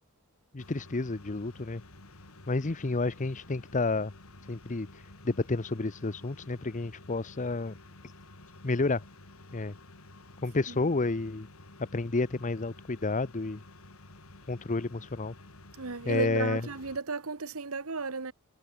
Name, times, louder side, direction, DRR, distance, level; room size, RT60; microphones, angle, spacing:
voice 1, 0.5-1.8 2.5-4.1 4.5-7.7 8.6-9.0 9.5-9.8 10.4-11.5 11.8-13.6 14.5-15.3 16.0-16.6, left 3 dB, 35° left, 0.8 m, -30 dB
sound 1, 0.6-17.0, left 2 dB, 85° left, 3.4 m, -52 dB
voice 2, 15.8-18.3, right 4 dB, 80° right, 1.4 m, -34 dB
head